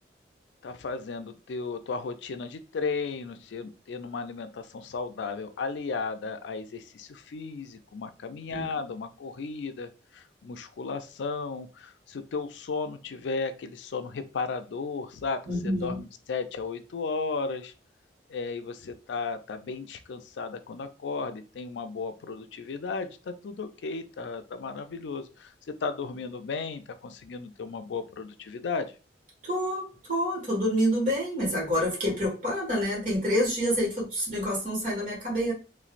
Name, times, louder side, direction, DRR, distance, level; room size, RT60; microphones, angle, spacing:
voice 1, 0.6-17.7 18.3-28.9, left 4 dB, 80° left, 9 dB, 0.4 m, -35 dB
voice 2, 15.5-16.0 29.4-35.5, equal, 45° right, -3 dB, 1.7 m, -27 dB
3.1 x 3.1 x 2.5 m, 0.33 s
head